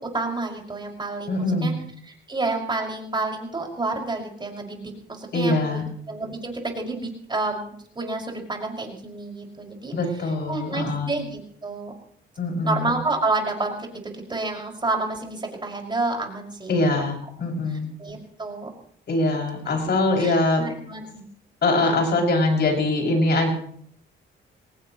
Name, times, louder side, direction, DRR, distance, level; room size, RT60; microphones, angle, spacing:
voice 1, 0.1-1.7 2.0-10.0 10.5-11.9 12.6-16.9 17.7-18.7 19.6-19.7 20.2-21.2, right 3 dB, 25° right, 0 dB, 6.0 m, -29 dB
voice 2, 1.3-1.8 5.3-5.8 9.9-11.1 12.4-12.9 16.7-17.9 19.1-20.6 21.6-23.5, left 2 dB, 55° left, 1 dB, 6.8 m, -23 dB
23.5 x 19.0 x 3.2 m, 0.62 s
cardioid pair, 90°, 20 cm